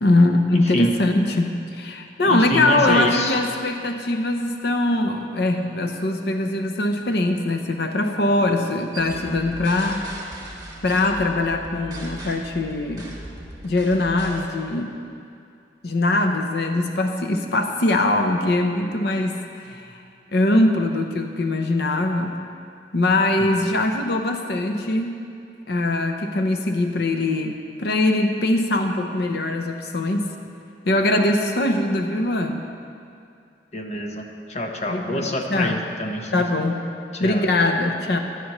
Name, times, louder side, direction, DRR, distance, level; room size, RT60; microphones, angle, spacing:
voice 1, 0.0-10.1 10.8-13.1 13.6-15.0 15.8-19.4 19.7-20.0 20.3-22.4 22.9-25.2 25.7-30.3 30.8-32.6 34.9-35.8 36.3-36.8 37.2-38.2, left 2 dB, 65° left, 4 dB, 0.7 m, -22 dB
voice 2, 0.5-0.9 2.2-3.4 23.4-23.6 33.7-36.4 37.1-37.5, left 1 dB, 40° left, 3 dB, 1.0 m, -26 dB
sound 1, 8.9-14.5, right 1 dB, 20° right, 1.9 m, -38 dB
16.0 x 11.0 x 3.1 m, 2.4 s
head